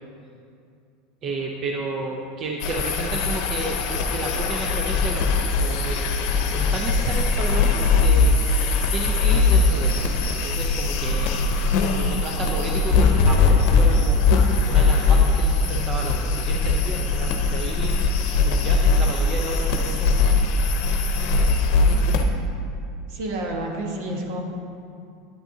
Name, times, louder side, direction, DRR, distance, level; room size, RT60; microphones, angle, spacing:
voice 1, 1.2-6.1 6.4-8.6 8.9-11.4 11.9-14.2 14.6-20.1, right 2 dB, 40° right, 0 dB, 0.7 m, -32 dB
sound 1, 2.6-22.2, left 3 dB, 65° left, 0.8 m, -20 dB
voice 2, 23.1-24.4, right 1 dB, 65° right, 1 dB, 1.4 m, -29 dB
9.1 x 9.0 x 2.8 m, 2.4 s
supercardioid pair, 110°, 0 cm